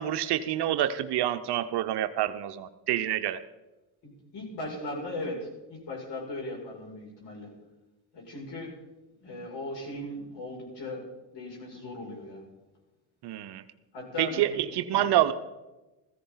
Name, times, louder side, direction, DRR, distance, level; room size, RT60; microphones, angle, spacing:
voice 1, 0.0-3.4 13.2-13.6 14.2-15.3, right 12 dB, 55° right, 11 dB, 0.9 m, -27 dB
voice 2, 4.0-7.5 8.1-8.7 9.2-11.1 11.3-12.4 13.9-14.6 14.9-15.1, left 1 dB, 55° left, -1 dB, 6.3 m, -38 dB
15.0 x 15.0 x 3.9 m, 1.1 s
hypercardioid pair, 65°, 48 cm